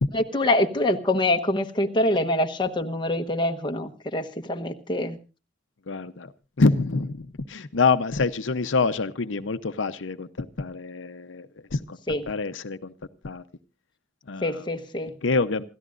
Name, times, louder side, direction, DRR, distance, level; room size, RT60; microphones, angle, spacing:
voice 1, 0.1-5.2 12.1-12.2 14.4-15.1, left 1 dB, 25° left, 5 dB, 1.1 m, -25 dB
voice 2, 5.9-6.3 6.6-12.0 12.3-12.9 13.2-13.4 14.3-14.7 15.2-15.6, left 4 dB, 85° left, 10 dB, 0.8 m, -26 dB
27.0 x 14.0 x 2.5 m, 0.33 s
head